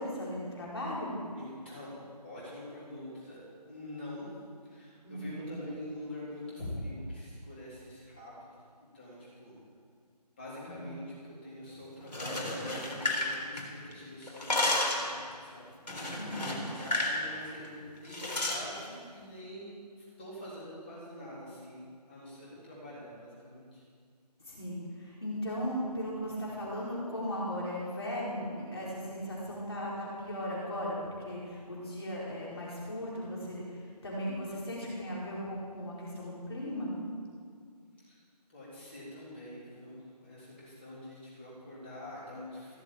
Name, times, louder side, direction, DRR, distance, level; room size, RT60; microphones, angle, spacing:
voice 1, 0.0-1.2 5.0-5.5 10.7-11.0 16.2-16.6 24.5-36.9, equal, 35° left, -5 dB, 4.7 m, -37 dB
voice 2, 1.3-4.3 4.6-8.6 8.9-9.5 10.4-15.7 16.0-21.8 22.1-23.8 38.0-38.2 38.5-42.8, left 1 dB, 15° left, -8 dB, 3.6 m, -45 dB
sound 1, 12.0-13.9 14.2-15.1 15.9-17.2 17.5-17.7 18.1-18.6, left 2 dB, 80° left, 3.9 m, -32 dB
17.0 x 7.2 x 8.8 m, 2.1 s
figure-of-eight pair, 175°, 21 cm